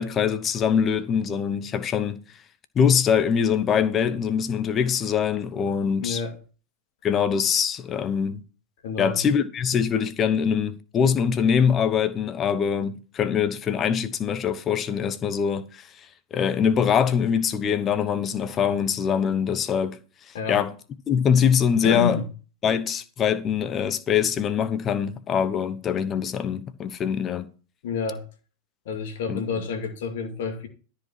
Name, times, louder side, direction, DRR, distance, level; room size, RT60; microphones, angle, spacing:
voice 1, 0.0-2.2 2.7-6.2 7.0-8.4 9.0-15.9 16.3-20.0 20.5-20.7 21.1-22.2 22.6-27.5 29.3-29.4, left 7 dB, 25° left, 1.0 m, -23 dB
voice 2, 6.0-6.4 8.8-9.2 20.3-20.6 21.8-22.2 27.8-28.3 28.9-30.7, left 5 dB, 55° left, 2.2 m, -29 dB
13.5 x 5.0 x 6.2 m
figure-of-eight pair, 90°, 0 cm